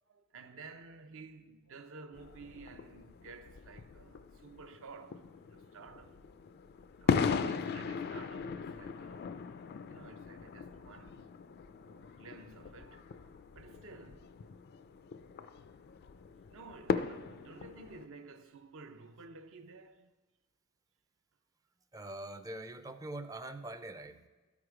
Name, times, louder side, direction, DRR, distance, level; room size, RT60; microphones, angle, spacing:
voice 1, 0.1-5.2 5.5-6.2 7.0-9.3 9.9-11.3 11.9-14.6 15.4-15.5 16.5-20.1 24.1-24.2, right 3 dB, 65° right, 0.6 m, -52 dB
sound 1, 2.1-18.1, left 5 dB, 50° left, 0.3 m, -39 dB
voice 2, 21.9-24.3, right 2 dB, 15° right, 0.4 m, -43 dB
12.5 x 4.8 x 4.9 m
head